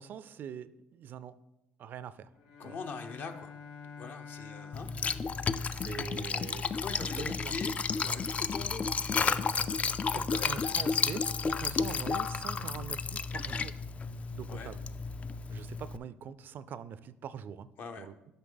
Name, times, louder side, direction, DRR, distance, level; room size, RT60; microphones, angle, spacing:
voice 1, 0.0-1.4 1.8-2.3 2.6-2.8 5.7-6.7 7.2-7.5 10.1-13.9 14.3-14.9 15.5-17.7 18.0-18.1, right 8 dB, 55° right, 16 dB, 0.3 m, -43 dB
Bowed string instrument, 2.3-6.5, left 5 dB, 85° left, 1.0 m, -49 dB
voice 2, 2.6-3.5 4.0-4.9 6.7-9.6 10.1-10.9 11.5-11.8 14.5-14.7 17.8-18.1, left 4 dB, 55° left, 7 dB, 0.8 m, -43 dB
Liquid, 4.7-16.0, left 5 dB, 35° left, 0.3 m, -32 dB
7.9 x 5.5 x 3.9 m, 0.93 s
supercardioid pair, 80°, 4 cm